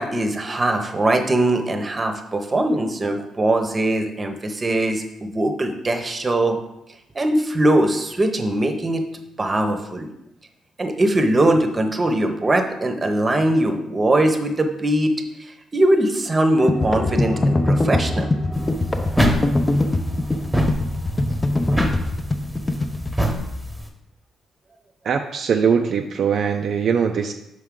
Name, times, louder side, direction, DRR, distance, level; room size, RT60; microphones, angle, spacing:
voice 1, 0.0-6.6 7.1-9.0 9.4-10.1 10.8-15.1 15.4-18.3, right 1 dB, 25° right, 6 dB, 0.9 m, -21 dB
sound 1, 16.6-23.1, left 2 dB, 20° left, 0.6 m, -22 dB
sound 2, 18.5-23.9, equal, 5° right, 1.1 m, -25 dB
voice 2, 25.0-27.3, right 6 dB, 60° right, 4 dB, 0.4 m, -21 dB
6.4 x 4.7 x 3.7 m, 0.85 s
cardioid pair, 90°, 0 cm